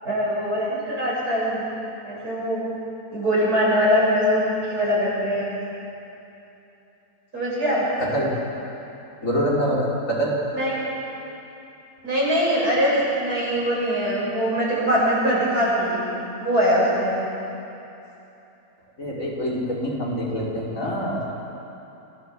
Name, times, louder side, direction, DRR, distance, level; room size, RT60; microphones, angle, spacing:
voice 1, 0.0-1.7 2.0-2.6 3.1-4.4 4.7-5.5 7.3-7.9 10.6-10.8 12.0-16.0 16.4-17.2, equal, 80° right, -6 dB, 8.0 m, -22 dB
voice 2, 8.0-8.3 9.2-10.6 19.0-21.3, equal, 55° left, -4 dB, 5.0 m, -25 dB
27.0 x 16.0 x 7.6 m, 2.9 s
omnidirectional pair, 1.6 m